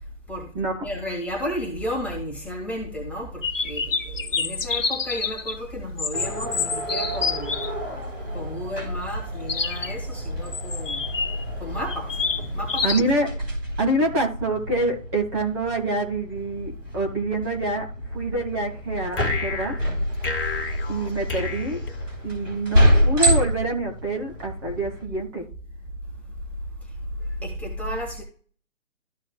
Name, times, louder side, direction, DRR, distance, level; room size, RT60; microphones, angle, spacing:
voice 1, 0.3-7.7 8.3-11.1 11.6-12.2 12.5-13.0 27.2-28.2, equal, 5° left, 1.6 m, -32 dB
sound 1, 3.4-5.6 6.0-7.7 9.5-10.0 10.5-11.4 11.9-13.0, left 5 dB, 75° left, 0.9 m, -28 dB
sound 2, 6.1-25.0, equal, 75° right, 3.8 m, -28 dB
voice 2, 12.8-13.3 13.8-19.8 20.9-21.8 22.2-25.4, right 2 dB, 20° right, 1.6 m, -26 dB
sound 3, 19.1-22.5, left 4 dB, 45° left, 1.6 m, -31 dB
14.0 x 4.9 x 2.3 m
figure-of-eight pair, 140°, 38 cm